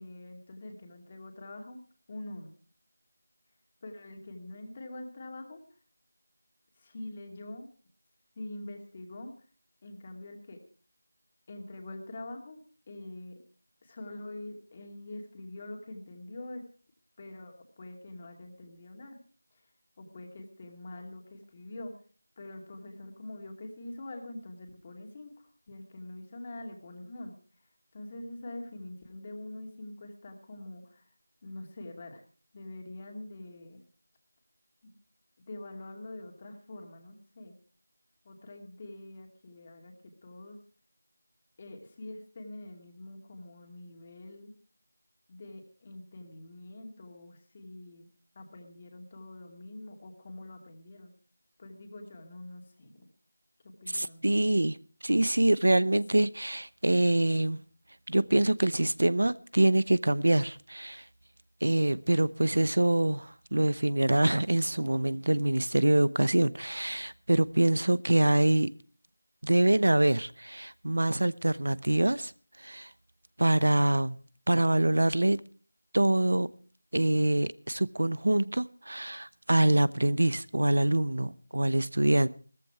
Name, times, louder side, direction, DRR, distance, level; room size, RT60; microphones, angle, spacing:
voice 1, 0.0-1.8 2.1-2.5 3.8-5.6 6.8-7.7 8.4-9.3 9.8-10.6 11.5-12.6 12.9-13.3 13.8-16.6 17.2-19.2 20.0-21.9 22.4-27.3 27.9-31.1 31.4-32.2 32.5-33.8 34.8-34.9 35.5-37.5 38.2-40.6 41.6-44.5 45.3-48.1 48.3-51.1 51.6-53.1 53.8-54.2, left 1 dB, 20° left, 2.4 m, -44 dB
voice 2, 53.9-54.8 55.0-57.6 58.1-61.0 61.6-68.7 69.4-72.3 72.6-72.9 73.4-74.2 74.5-75.4 75.9-76.5 76.9-82.3, right 1 dB, 70° right, 0.8 m, -25 dB
16.5 x 14.5 x 4.6 m
figure-of-eight pair, 175°, 0 cm